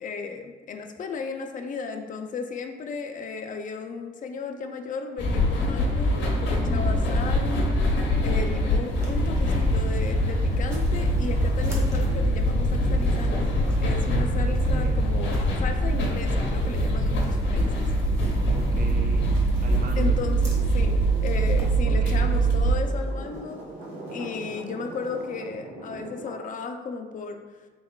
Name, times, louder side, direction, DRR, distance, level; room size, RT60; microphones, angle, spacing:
voice 1, 0.0-7.6 7.9-13.5 13.8-17.9 20.0-23.6 24.1-27.4, left 4 dB, 40° left, 5 dB, 0.4 m, -35 dB
sound 1, 5.2-22.8, right 1 dB, 75° left, 0.8 m, -23 dB
sound 2, 8.8-21.8, left 1 dB, 15° right, 1.1 m, -41 dB
sound 3, 11.1-26.5, right 1 dB, 75° right, 1.2 m, -43 dB
voice 2, 14.4-15.1 18.5-20.2 21.9-22.4, right 2 dB, 50° right, 3 dB, 0.6 m, -38 dB
3.7 x 3.5 x 2.3 m, 1.4 s
cardioid pair, 90°, 20 cm